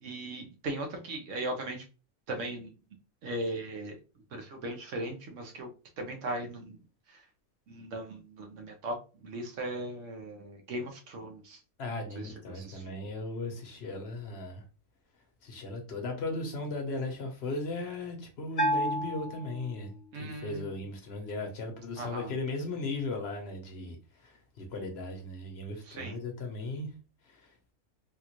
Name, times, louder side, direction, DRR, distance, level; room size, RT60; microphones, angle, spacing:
voice 1, 0.0-1.8 2.3-2.7 3.2-4.0 4.3-5.7 6.0-6.8 7.1-7.2 7.7-11.6 12.2-13.0 20.1-20.7 22.0-22.3 25.8-26.2, right 1 dB, 65° right, 1.1 m, -38 dB
voice 2, 11.8-14.6 15.4-24.0 24.2-26.9 27.3-27.4, left 2 dB, 50° left, 1.0 m, -37 dB
Bell, 18.6-20.2, equal, 35° left, 0.6 m, -31 dB
3.5 x 2.4 x 2.9 m
omnidirectional pair, 1.5 m